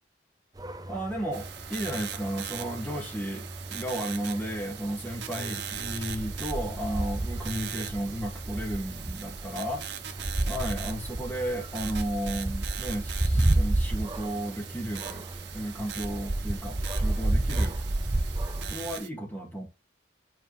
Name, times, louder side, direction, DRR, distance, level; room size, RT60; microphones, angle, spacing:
sound 1, 0.6-18.9, right 1 dB, 20° right, 0.6 m, -32 dB
voice 1, 0.9-9.8 10.5-15.3 15.5-17.8 18.7-19.7, right 1 dB, 10° left, 2.1 m, -34 dB
sound 2, 1.3-19.1, right 9 dB, 65° right, 0.8 m, -41 dB
4.6 x 4.3 x 5.3 m
head